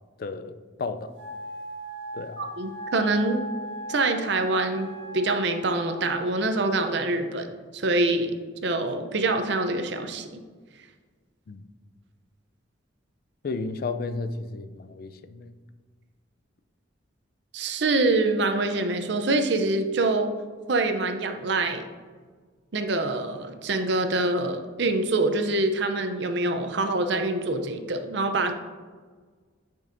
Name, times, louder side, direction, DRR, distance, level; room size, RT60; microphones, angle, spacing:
voice 1, 0.2-0.5 0.8-1.1 2.1-2.4 11.5-11.6 13.4-15.5, left 3 dB, 50° left, 10 dB, 0.4 m, -33 dB
Wind instrument woodwind instrument, 1.1-6.4, right 1 dB, 90° right, 1.4 m, -38 dB
voice 2, 2.4-3.4 3.9-7.5 7.7-10.4 17.5-20.3 20.7-21.8 22.7-28.5, right 2 dB, 60° right, 7 dB, 0.6 m, -25 dB
9.0 x 5.3 x 2.6 m, 1.5 s
head